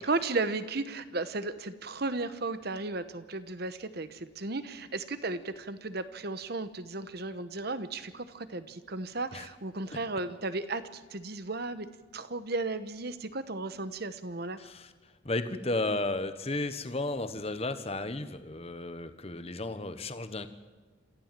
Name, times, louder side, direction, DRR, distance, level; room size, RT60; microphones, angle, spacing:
voice 1, 0.1-11.9 12.1-14.6, right 3 dB, 50° right, 12 dB, 1.1 m, -35 dB
voice 2, 14.6-20.5, left 2 dB, 30° left, 10 dB, 1.1 m, -34 dB
27.0 x 14.5 x 7.6 m, 1.3 s
head